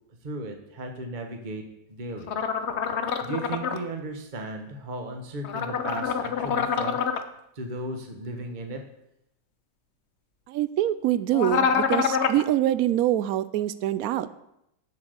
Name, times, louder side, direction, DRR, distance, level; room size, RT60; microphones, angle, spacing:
voice 1, 0.2-1.6 1.9-2.3 3.2-7.0 7.5-8.8, right 2 dB, 30° right, 4 dB, 1.2 m, -35 dB
sound 1, 2.3-3.8 5.4-7.2 11.3-12.4, left 6 dB, 60° left, 0.7 m, -26 dB
voice 2, 10.5-14.3, right 13 dB, 80° right, 15 dB, 0.8 m, -25 dB
7.7 x 6.7 x 8.0 m, 0.81 s
omnidirectional pair, 2.1 m